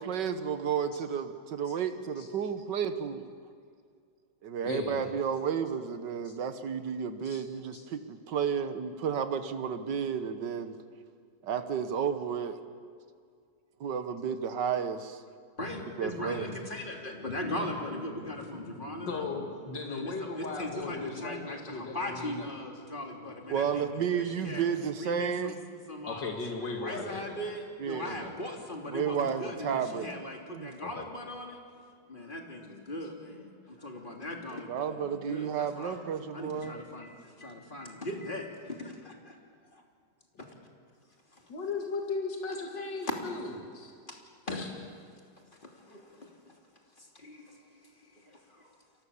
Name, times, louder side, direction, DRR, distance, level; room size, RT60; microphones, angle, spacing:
voice 1, 0.0-3.3 4.4-10.8 11.4-12.6 13.8-15.2 16.0-16.5 23.5-25.6 27.8-28.2 28.9-30.1 30.5-30.7 34.7-36.8, right 7 dB, 75° right, 9 dB, 1.9 m, -32 dB
voice 2, 4.6-5.1 7.2-7.4 7.7-7.8 19.1-22.5 26.1-27.4 28.1-28.3 30.8-31.0 37.0-37.1 41.5-43.9 44.5-44.7, left 3 dB, 80° left, 1 dB, 3.0 m, -37 dB
voice 3, 15.6-19.3 19.9-24.7 25.0-25.5 25.9-26.3 26.8-31.6 32.1-36.0 36.3-39.3 41.3-41.5 44.1-44.2 44.5-44.6 45.6-46.6 47.0-48.8, left 1 dB, 25° left, 1 dB, 3.3 m, -39 dB
30.0 x 23.5 x 7.2 m, 2.2 s
omnidirectional pair, 1.9 m